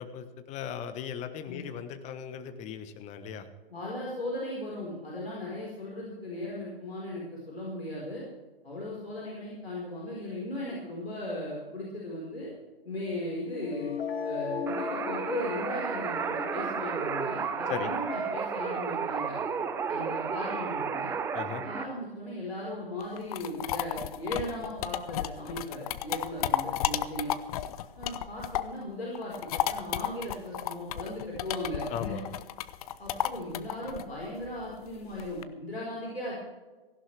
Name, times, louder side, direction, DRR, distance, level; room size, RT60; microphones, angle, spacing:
voice 1, 0.0-3.5 17.7-17.9 21.3-21.6 31.9-32.3, left 8 dB, 25° left, 10 dB, 1.2 m, -37 dB
voice 2, 3.7-8.2 8.6-12.5 12.8-13.9 14.2-19.4 19.9-21.1 21.6-27.3 28.0-32.2 33.0-36.4, left 1 dB, 90° left, -4 dB, 4.7 m, -37 dB
sound 1, 13.5-19.4, left 6 dB, 75° left, 1.5 m, -38 dB
sound 2, 14.7-21.8, right 6 dB, 10° right, 0.5 m, -32 dB
sound 3, 23.0-28.8 29.1-35.4, left 12 dB, 40° left, 0.7 m, -33 dB
17.5 x 15.5 x 3.4 m, 1.3 s
figure-of-eight pair, 120°, 30 cm